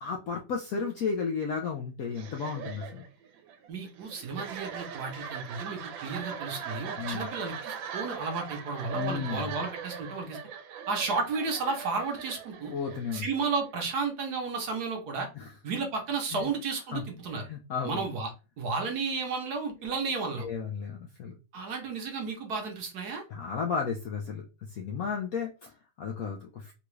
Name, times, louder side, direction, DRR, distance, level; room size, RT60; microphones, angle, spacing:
voice 1, 0.0-3.0 7.0-7.3 8.9-9.5 12.7-13.3 15.4-15.5 16.3-16.5 16.9-17.0 17.5-18.1 20.4-21.4 23.3-24.4 24.7-26.7, left 5 dB, 75° left, 0.8 m, -33 dB
sound 1, 2.1-13.8, right 7 dB, 85° right, 1.4 m, -40 dB
voice 2, 3.7-10.4 10.9-12.8 13.1-15.3 15.6-17.5 17.8-20.5 21.5-23.2, right 4 dB, 65° right, 1.2 m, -33 dB
3.8 x 2.3 x 3.1 m
omnidirectional pair, 2.0 m